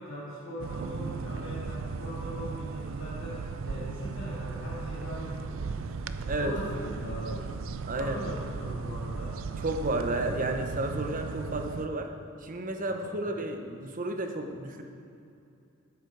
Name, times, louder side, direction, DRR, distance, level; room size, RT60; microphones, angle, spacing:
voice 1, 0.0-5.9 6.4-7.5 7.9-9.4 12.9-13.3, equal, 65° left, -9 dB, 2.3 m, -40 dB
sound 1, 0.6-11.9, right 4 dB, 65° right, 0.4 m, -36 dB
voice 2, 7.8-8.3 9.6-12.1 12.4-14.8, right 1 dB, 40° right, 5 dB, 0.9 m, -32 dB
12.5 x 7.5 x 4.7 m, 2.6 s
head